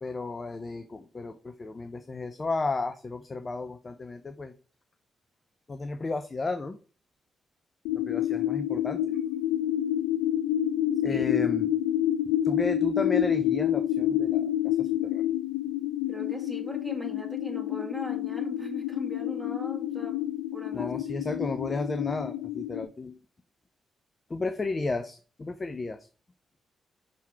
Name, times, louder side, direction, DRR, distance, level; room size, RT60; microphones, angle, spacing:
voice 1, 0.0-4.5 5.7-6.8 7.9-9.0 11.0-11.7 12.4-15.4 20.7-23.2 24.3-26.0, left 3 dB, 40° left, 9 dB, 0.6 m, -33 dB
sound 1, 7.9-22.9, left 11 dB, 90° left, 0.3 m, -28 dB
voice 2, 16.1-20.2 20.5-20.9 21.3-21.5, equal, ahead, 1 dB, 2.2 m, -40 dB
5.9 x 3.8 x 4.7 m, 0.37 s
hypercardioid pair, 45°, 0 cm